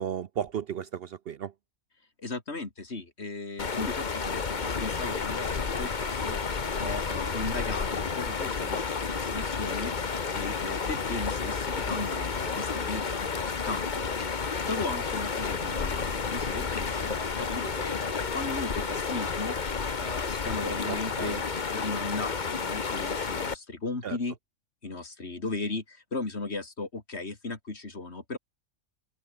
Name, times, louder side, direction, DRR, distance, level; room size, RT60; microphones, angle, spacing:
voice 1, 0.0-1.5 20.9-21.4 24.0-24.2, right 8 dB, 60° right, 0.7 m, -34 dB
voice 2, 2.2-9.9 10.3-19.6 20.0-21.4 21.7-24.4 24.8-28.4, left 3 dB, 55° left, 3.1 m, -36 dB
sound 1, 3.6-23.5, left 5 dB, 40° left, 1.3 m, -31 dB
open air
omnidirectional pair, 1.3 m